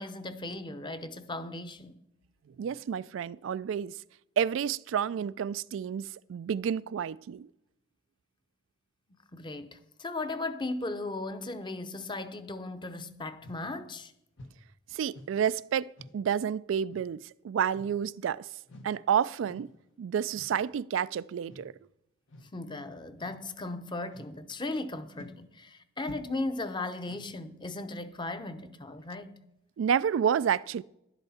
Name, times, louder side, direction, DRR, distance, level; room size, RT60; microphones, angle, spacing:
voice 1, 0.0-2.1 9.1-14.1 22.5-29.4, left 2 dB, 25° left, 0.7 m, -37 dB
voice 2, 2.6-3.9 4.4-7.5 14.9-18.5 18.8-19.7 20.0-21.7 29.8-30.8, right 8 dB, 85° right, 0.3 m, -30 dB
sound 1, 13.4-13.7 14.4-14.6 15.1-15.4 16.0-16.2 16.9-17.1 17.7-18.1 18.7-19.0 19.4-19.7 20.3-20.7 21.5-21.7 22.3-22.6 23.2-23.5 24.1-24.4 25.1-25.4 26.0-26.5 27.0-27.4, left 1 dB, 80° left, 1.2 m, -50 dB
11.5 x 11.0 x 4.2 m
head